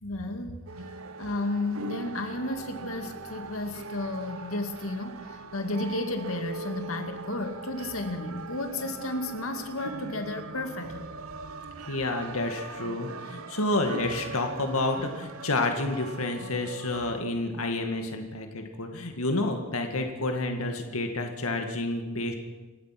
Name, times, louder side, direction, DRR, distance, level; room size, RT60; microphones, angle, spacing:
voice 1, 0.0-0.6 1.2-11.0, left 2 dB, 75° left, 5 dB, 2.3 m, -33 dB
sound 1, 0.7-17.2, right 3 dB, 75° right, 1.0 m, -41 dB
sound 2, 1.7-13.2, left 2 dB, 5° left, 5.5 m, -56 dB
voice 2, 11.9-22.3, left 2 dB, 90° left, 4 dB, 2.1 m, -29 dB
29.0 x 16.0 x 6.1 m, 1.2 s
head